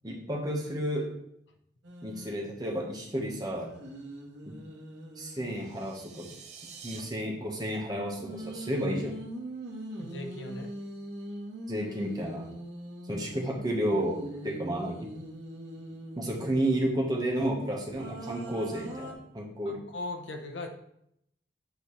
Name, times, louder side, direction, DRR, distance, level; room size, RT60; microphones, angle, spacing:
voice 1, 0.0-1.1 2.0-3.7 4.5-4.6 5.2-6.3 6.8-9.2 11.7-12.5 13.1-15.1 16.1-19.8, right 1 dB, 20° right, -1 dB, 1.3 m, -31 dB
sound 1, 1.8-2.5 3.3-6.0 8.2-16.9 17.9-19.1, right 1 dB, 80° right, 1.6 m, -42 dB
sound 2, 5.4-7.0, right 6 dB, 40° right, 0.9 m, -48 dB
voice 2, 10.0-10.7 19.7-20.7, left 2 dB, 80° left, 5 dB, 0.9 m, -38 dB
8.1 x 5.1 x 3.2 m, 0.75 s
head